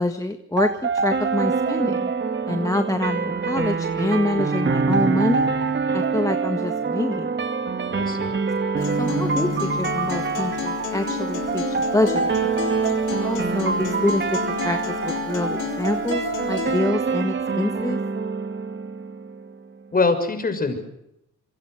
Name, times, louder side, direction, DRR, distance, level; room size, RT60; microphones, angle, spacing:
voice 1, 0.0-2.1 2.5-5.5 5.9-7.4 9.0-12.4 13.2-18.0, left 2 dB, 10° left, 7 dB, 1.7 m, -26 dB
sound 1, 0.6-19.5, right 4 dB, 40° right, 2.4 m, -25 dB
voice 2, 7.9-8.3 19.9-20.8, left 3 dB, 30° left, 8 dB, 6.3 m, -23 dB
Acoustic guitar, 8.8-16.8, left 9 dB, 85° left, 5.2 m, -32 dB
27.0 x 24.0 x 6.5 m, 0.82 s
cardioid pair, 90°, 30 cm